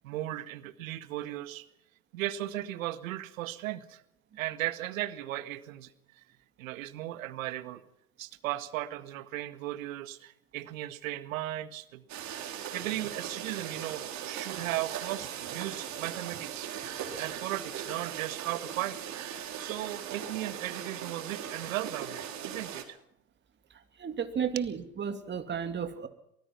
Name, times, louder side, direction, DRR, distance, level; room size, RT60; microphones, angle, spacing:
voice 1, 0.0-1.7 2.1-4.0 4.4-6.2 6.6-7.8 8.2-12.0 12.7-16.7 17.2-19.0 19.6-23.0 24.4-24.6, right 14 dB, 70° right, 12 dB, 1.8 m, -36 dB
sound 1, 12.1-22.8, right 9 dB, 40° right, 4.3 m, -39 dB
voice 2, 24.0-26.1, right 7 dB, 25° right, 7 dB, 2.6 m, -33 dB
24.0 x 19.0 x 5.9 m, 0.77 s
hypercardioid pair, 95°, 42 cm